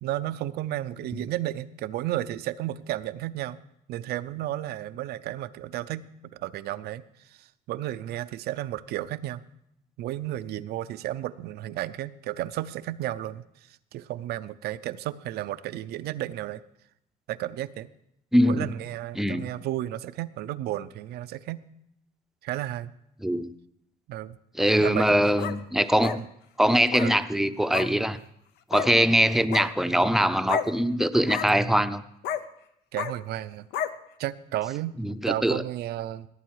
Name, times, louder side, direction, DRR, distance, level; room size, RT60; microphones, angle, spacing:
voice 1, 0.0-3.6 3.9-7.0 7.4-9.4 10.0-13.4 13.9-16.6 17.3-17.9 18.4-21.6 22.4-22.9 24.1-24.4 24.8-25.2 26.2-26.3 27.0-27.1 32.9-33.7 34.2-35.0 35.3-36.3, right 14 dB, 70° right, 14 dB, 0.5 m, -33 dB
voice 2, 18.3-18.7 19.2-19.5 23.2-23.5 24.6-26.2 26.6-28.2 28.7-32.0 35.0-35.6, equal, ahead, 11 dB, 0.6 m, -22 dB
sound 1, 24.9-25.6 26.0-26.2 26.9-27.1 27.7-27.9 28.7-28.9 29.4-29.7 30.4-30.7 31.2-31.5 32.2-32.4 32.9-33.1 33.7-33.9, left 9 dB, 80° left, 0.7 m, -30 dB
18.5 x 8.6 x 4.7 m, 0.77 s
cardioid pair, 110°, 17 cm